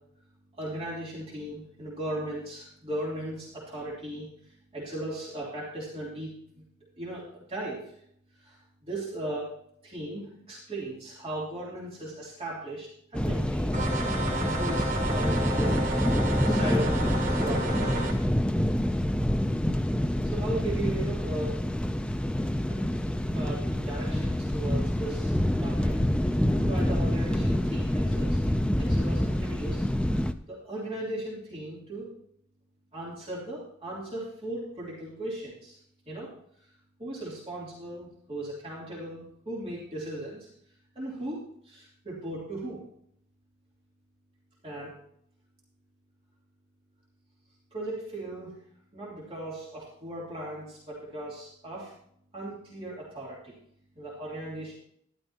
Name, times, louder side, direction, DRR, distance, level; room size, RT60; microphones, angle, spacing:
voice 1, 0.6-4.3 4.7-6.3 7.0-7.2 7.5-7.8 8.4-8.6 8.8-9.5 9.8-13.7 14.3-15.8 16.4-17.0 17.3-18.1 20.3-21.6 22.7-25.3 25.6-25.9 26.2-28.4 28.8-29.9 30.1-30.2 30.5-32.1 32.9-35.8 36.1-36.3 37.0-40.5 40.9-41.4 41.6-42.8 44.6-44.9 47.7-48.5 48.9-51.9 52.3-53.5 54.0-54.7, right 1 dB, 30° right, -6 dB, 3.0 m, -37 dB
sound 1, 13.1-30.3, left 1 dB, 5° left, 0.4 m, -27 dB
sound 2, 13.7-18.1, right 2 dB, 55° right, 2.8 m, -32 dB
12.5 x 12.0 x 2.9 m, 0.68 s
head